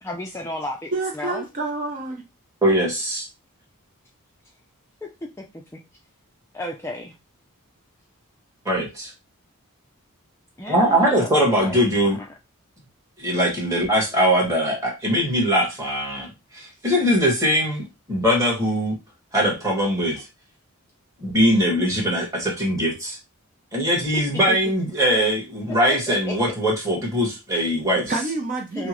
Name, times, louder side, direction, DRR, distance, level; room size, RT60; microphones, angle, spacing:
voice 1, 0.0-1.5 5.4-5.8 6.5-7.1 10.6-12.3 24.1-24.2 24.5-24.6 25.9-26.3 27.5-27.7 28.7-28.9, left 1 dB, 10° left, 1 dB, 0.4 m, -33 dB
voice 2, 0.9-2.2 28.1-28.9, right 2 dB, 35° right, 1 dB, 0.6 m, -28 dB
voice 3, 2.6-3.3 8.6-9.1 10.7-12.2 13.2-19.0 19.3-20.2 21.2-23.2 23.7-28.1, equal, 15° right, -2 dB, 1.5 m, -21 dB
5.8 x 2.1 x 3.0 m, 0.25 s
head